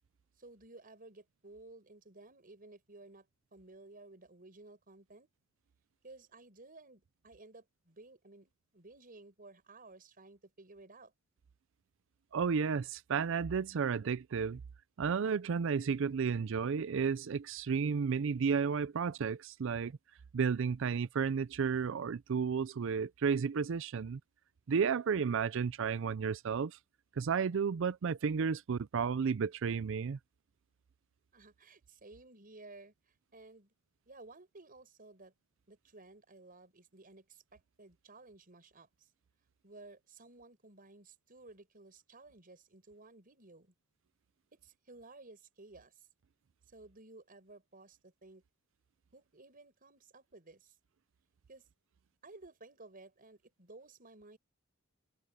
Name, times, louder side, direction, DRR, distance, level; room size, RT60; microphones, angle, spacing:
voice 1, 0.4-3.3 3.5-5.3 6.0-11.1 31.3-33.7 34.1-35.3 35.7-39.1 39.6-43.7 44.5-46.1 46.7-48.4 49.1-50.8 51.5-51.7 52.2-54.4, right 2 dB, 45° right, 5.5 m, -56 dB
voice 2, 12.3-14.6 15.0-19.9 20.3-24.2 24.7-26.8 27.2-30.2, right 6 dB, 65° right, 0.4 m, -32 dB
open air
head